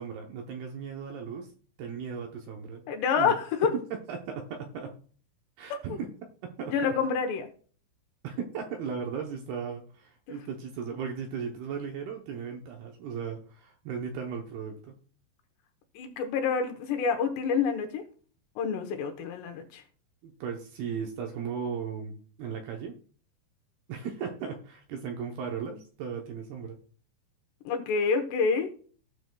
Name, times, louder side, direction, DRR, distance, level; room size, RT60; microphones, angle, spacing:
voice 1, 0.0-1.5 1.8-2.8 3.2-3.4 3.6-5.0 5.6-6.1 6.4-6.8 8.2-15.0 20.2-22.9 23.9-26.8, right 6 dB, 75° right, 2.4 m, -36 dB
voice 2, 2.9-3.7 5.7-6.0 6.7-7.5 16.0-18.0 18.6-19.8 27.7-28.7, left 6 dB, 75° left, 2.9 m, -27 dB
16.5 x 6.8 x 2.2 m
omnidirectional pair, 5.2 m